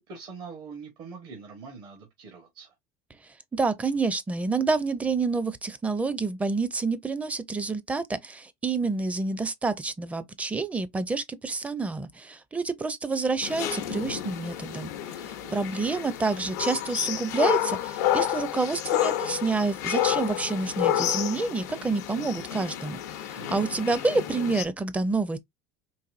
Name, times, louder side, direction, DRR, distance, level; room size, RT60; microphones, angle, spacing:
voice 1, 0.0-2.7 15.4-15.6 23.3-24.0, right 5 dB, 60° right, 1.2 m, -44 dB
voice 2, 3.5-25.4, right 3 dB, 15° right, 0.6 m, -28 dB
sound 1, 13.4-24.6, left 12 dB, 90° left, 0.7 m, -30 dB
4.0 x 2.6 x 2.5 m
supercardioid pair, 100°, 9 cm